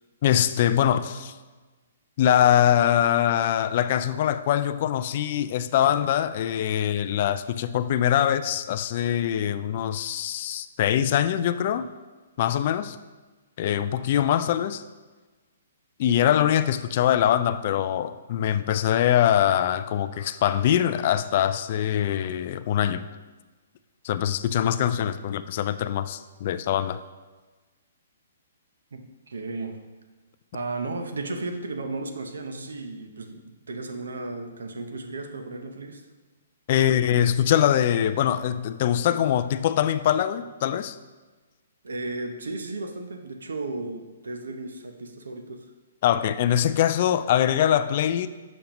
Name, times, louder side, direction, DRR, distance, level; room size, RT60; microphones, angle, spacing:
voice 1, 0.2-1.3 2.2-11.9 12.4-13.0 13.6-14.8 16.0-23.0 24.0-27.0 36.7-41.0 46.0-48.3, left 10 dB, 50° left, 13 dB, 0.3 m, -23 dB
voice 2, 28.9-29.8 30.5-36.0 41.8-45.7, right 2 dB, 85° right, 6 dB, 0.7 m, -34 dB
7.0 x 5.2 x 3.0 m, 1.3 s
hypercardioid pair, 135°, 0 cm